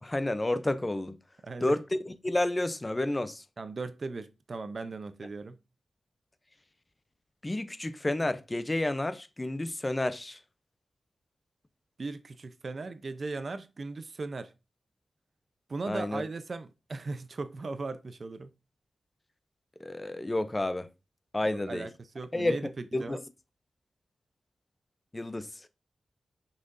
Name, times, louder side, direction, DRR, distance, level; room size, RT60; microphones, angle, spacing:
voice 1, 0.0-1.2 1.6-3.4 7.4-10.4 15.9-16.2 19.8-20.9 21.3-21.9 22.3-22.6 22.9-23.2 25.1-25.7, left 1 dB, 20° left, 0.6 m, -30 dB
voice 2, 1.4-1.8 3.6-5.6 12.0-14.5 15.7-18.5 21.5-23.2, right 3 dB, 45° right, 0.6 m, -38 dB
6.3 x 5.7 x 2.6 m
wide cardioid pair, 120°, 0 cm